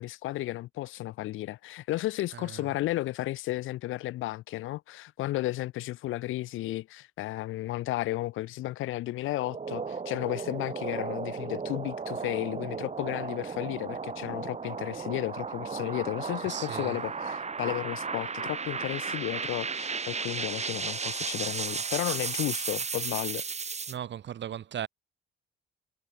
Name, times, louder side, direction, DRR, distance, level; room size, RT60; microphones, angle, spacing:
voice 1, 0.0-23.4, left 16 dB, 90° left, 1.8 m, -33 dB
sound 1, 9.3-24.0, right 5 dB, 35° right, 3.8 m, -35 dB
voice 2, 16.5-17.0 23.9-24.9, right 10 dB, 65° right, 7.4 m, -37 dB
cardioid pair, 90°, 20 cm